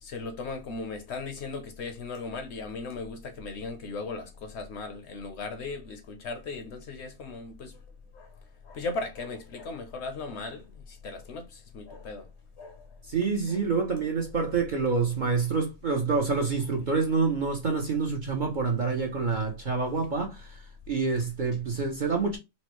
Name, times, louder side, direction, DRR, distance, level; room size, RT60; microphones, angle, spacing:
voice 1, 0.0-7.8 8.1-12.3 12.6-13.0 13.5-13.6, left 3 dB, 60° left, 0.8 m, -37 dB
voice 2, 13.1-22.4, right 4 dB, 50° right, 0.6 m, -27 dB
4.2 x 2.1 x 2.9 m
omnidirectional pair, 1.4 m